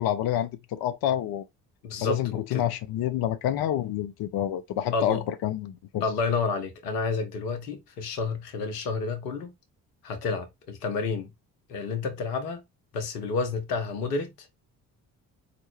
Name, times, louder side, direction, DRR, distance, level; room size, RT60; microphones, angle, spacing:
voice 1, 0.0-1.4 2.0-6.0, left 11 dB, 55° left, 0.6 m, -28 dB
voice 2, 1.8-2.6 4.9-5.2 6.0-9.5 10.0-11.3 11.7-12.6 12.9-14.3, left 4 dB, 85° left, 0.9 m, -30 dB
4.9 x 2.0 x 3.2 m
hypercardioid pair, 45°, 45 cm